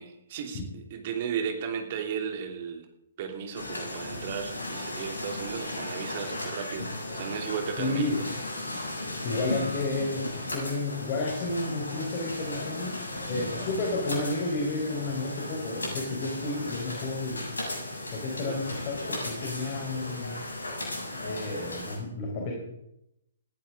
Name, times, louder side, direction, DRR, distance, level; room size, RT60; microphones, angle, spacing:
voice 1, 0.0-2.9 3.2-8.1 18.5-18.8, right 7 dB, 40° right, 4 dB, 3.0 m, -35 dB
sound 1, 3.5-22.0, left 1 dB, 75° left, 7.4 m, -36 dB
voice 2, 7.8-8.2 9.2-13.0 13.3-17.5 18.1-20.4 21.2-22.5, left 2 dB, 35° left, 0 dB, 4.4 m, -31 dB
20.0 x 15.0 x 3.8 m, 0.85 s
figure-of-eight pair, 125°, 0 cm